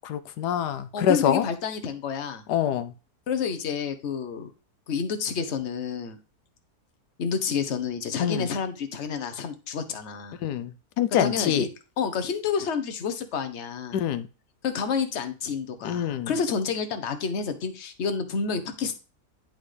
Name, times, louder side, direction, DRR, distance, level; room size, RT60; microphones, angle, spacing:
voice 1, 0.0-1.5 2.5-2.9 8.2-8.5 10.4-11.7 13.9-14.3 15.8-16.3, left 10 dB, 90° left, 1.3 m, -25 dB
voice 2, 0.9-2.4 3.3-4.5 4.9-6.2 7.2-10.4 11.2-11.7 12.0-14.0 14.6-19.0, left 6 dB, 50° left, 1.1 m, -29 dB
10.5 x 3.9 x 3.3 m
omnidirectional pair, 1.7 m